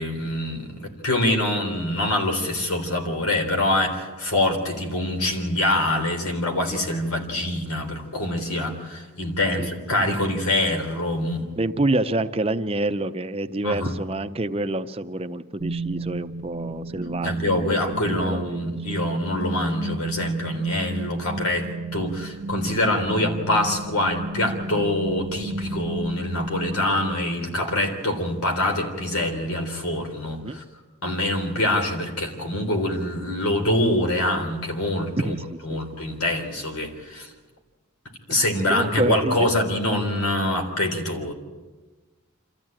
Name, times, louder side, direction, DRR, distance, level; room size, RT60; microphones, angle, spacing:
voice 1, 0.0-11.5 13.6-13.9 17.2-30.6 31.0-35.4 35.6-37.3 38.3-41.3, left 1 dB, 90° left, 4 dB, 3.7 m, -25 dB
voice 2, 11.6-17.3 18.2-18.8 30.4-30.6 35.2-35.8 38.7-39.5, right 2 dB, 25° right, 10 dB, 0.6 m, -27 dB
sound 1, 15.6-27.6, right 2 dB, 55° right, 0.8 m, -33 dB
27.0 x 14.0 x 8.8 m, 1.3 s
head